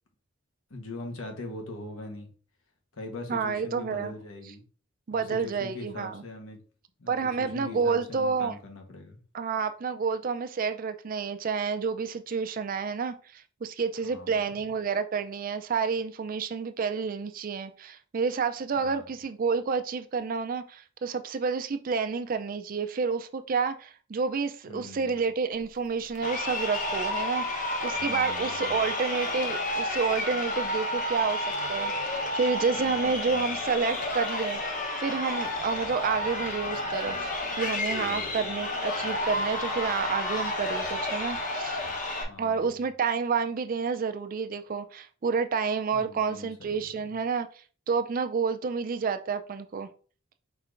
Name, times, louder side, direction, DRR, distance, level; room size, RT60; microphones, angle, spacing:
voice 1, 0.7-2.3 2.9-4.6 5.1-6.6 7.0-9.2 14.0-14.6 18.7-19.0 24.7-25.2 27.9-28.9 32.7-33.5 37.9-38.4 42.2-42.8 45.9-47.2, left 2 dB, 85° left, 1.2 m, -42 dB
voice 2, 3.3-4.1 5.1-6.2 7.1-8.5 9.3-34.6 35.0-41.8 42.4-47.5 47.9-49.9, right 5 dB, 45° right, 0.4 m, -29 dB
Crowd, 26.1-42.2, left 2 dB, 40° left, 1.0 m, -31 dB
4.5 x 4.4 x 2.5 m
head